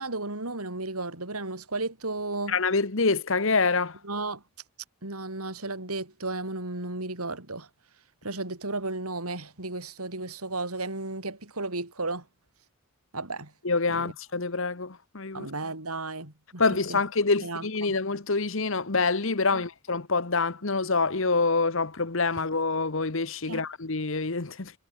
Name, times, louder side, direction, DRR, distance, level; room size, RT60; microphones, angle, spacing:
voice 1, 0.0-2.6 4.0-4.4 5.0-7.7 8.2-12.2 13.1-13.5 13.9-14.1 15.3-16.6 16.9-17.0 17.4-18.0 19.5-19.6 23.5-23.7, right 2 dB, 90° right, 5.6 m, -34 dB
voice 2, 2.5-4.0 13.6-15.5 16.6-24.7, left 4 dB, 60° left, 1.3 m, -26 dB
head